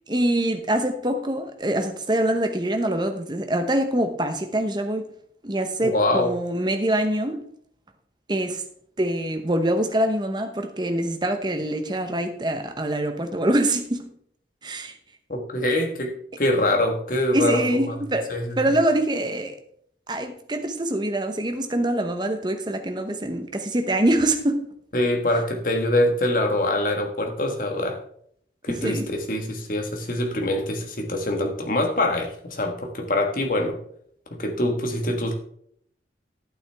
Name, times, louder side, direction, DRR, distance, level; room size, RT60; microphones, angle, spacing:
voice 1, 0.1-5.1 5.4-7.4 8.3-8.6 9.0-14.1 14.6-14.9 17.3-19.5 20.1-24.7 28.7-29.1, right 1 dB, 25° right, 0.9 m, -24 dB
voice 2, 5.8-6.3 15.3-18.0 18.3-18.8 24.9-28.0 28.6-33.8 34.3-35.3, left 1 dB, 50° left, 1.5 m, -24 dB
11.0 x 9.1 x 3.5 m
head